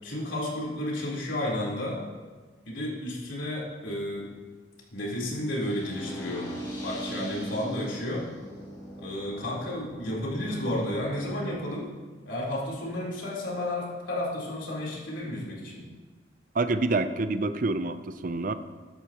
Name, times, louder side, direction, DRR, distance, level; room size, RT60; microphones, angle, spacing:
voice 1, 0.0-2.0 2.6-4.3 4.9-6.5 6.8-8.3 9.0-11.9 12.2-15.8, left 1 dB, 85° left, -5 dB, 3.8 m, -32 dB
sound 1, 5.6-11.6, equal, 20° left, 2.6 m, -40 dB
voice 2, 16.5-18.5, right 3 dB, 45° right, 10 dB, 0.5 m, -27 dB
14.5 x 11.5 x 3.0 m, 1.4 s
head